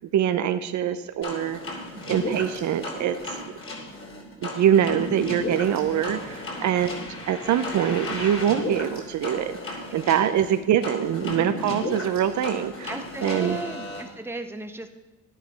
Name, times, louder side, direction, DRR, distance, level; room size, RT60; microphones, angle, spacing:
voice 1, 0.1-1.6 2.1-3.4 4.4-6.9 7.3-12.9 13.2-13.6, right 10 dB, 70° right, 10 dB, 0.7 m, -24 dB
sound 1, 1.2-14.0, left 1 dB, 45° left, 3.3 m, -34 dB
voice 2, 1.9-2.3 6.6-7.1 9.9-10.4 12.9-14.9, right 2 dB, 10° right, 6 dB, 1.0 m, -37 dB
11.0 x 9.8 x 5.1 m, 1.0 s
cardioid pair, 90°, 30 cm